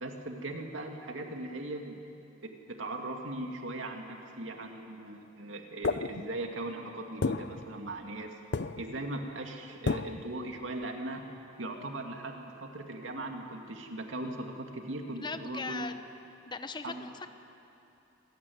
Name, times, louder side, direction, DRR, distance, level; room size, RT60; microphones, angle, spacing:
voice 1, 0.0-2.0 2.4-8.4 8.8-11.2 11.6-15.8 16.8-17.1, right 2 dB, 80° right, 3 dB, 2.4 m, -39 dB
sound 1, 5.8-6.6 7.2-8.3 8.5-9.1 9.9-10.4, left 3 dB, 60° left, 0.6 m, -33 dB
voice 2, 15.2-16.0 16.5-17.3, left 4 dB, 25° left, 9 dB, 1.0 m, -39 dB
26.0 x 17.0 x 9.5 m, 2.7 s
head